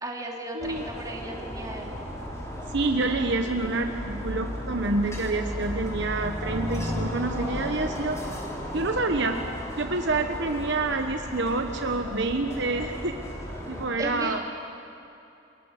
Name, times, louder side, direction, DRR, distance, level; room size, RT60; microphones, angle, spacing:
voice 1, 0.0-1.9 14.0-14.3, right 1 dB, 20° right, 0 dB, 3.2 m, -35 dB
sound 1, 0.6-13.9, equal, 15° left, 3.9 m, -35 dB
voice 2, 2.7-8.2 8.7-9.4 9.8-13.2 13.7-14.4, right 3 dB, 60° right, 5 dB, 1.2 m, -27 dB
29.5 x 22.5 x 6.7 m, 2.8 s
head